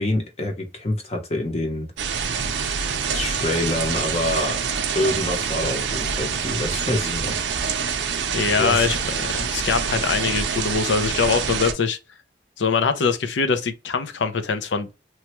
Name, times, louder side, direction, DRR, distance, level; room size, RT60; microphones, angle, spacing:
voice 1, 0.0-1.9 3.1-4.6 4.9-7.4 8.6-8.9, left 1 dB, 35° left, 0.8 m, -26 dB
sound 1, 2.0-11.7, right 6 dB, 80° right, 0.5 m, -26 dB
voice 2, 8.3-12.0 12.6-14.9, left 5 dB, 85° left, 0.5 m, -23 dB
3.1 x 2.2 x 2.9 m
head